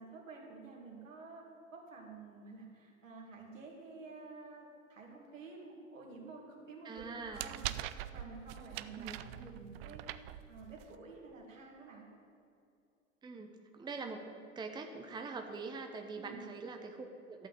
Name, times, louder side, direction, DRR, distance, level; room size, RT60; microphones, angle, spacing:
voice 1, 0.0-7.7 8.0-12.1 16.1-16.4, right 3 dB, 75° right, -1 dB, 2.3 m, -51 dB
voice 2, 6.8-7.4 9.0-9.2 13.2-14.3 14.6-17.5, right 4 dB, 10° right, 4 dB, 0.8 m, -44 dB
sound 1, 7.0-10.9, right 13 dB, 50° right, 0.5 m, -43 dB
12.5 x 5.6 x 7.5 m, 2.5 s
figure-of-eight pair, 85°, 39 cm